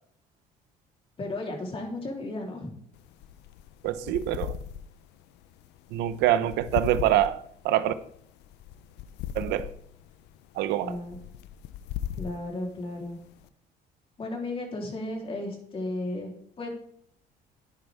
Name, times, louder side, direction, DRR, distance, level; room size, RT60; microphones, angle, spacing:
voice 1, 1.2-2.7 10.8-11.2 12.1-13.2 14.2-16.3 16.6-16.7, left 2 dB, 35° left, 3.5 m, -34 dB
sound 1, 2.9-13.5, left 11 dB, 90° left, 0.6 m, -39 dB
voice 2, 3.8-4.6 5.9-7.9 9.3-9.7 10.5-11.0, right 12 dB, 90° right, 0.8 m, -25 dB
10.5 x 10.0 x 3.5 m
cardioid pair, 110°, 17 cm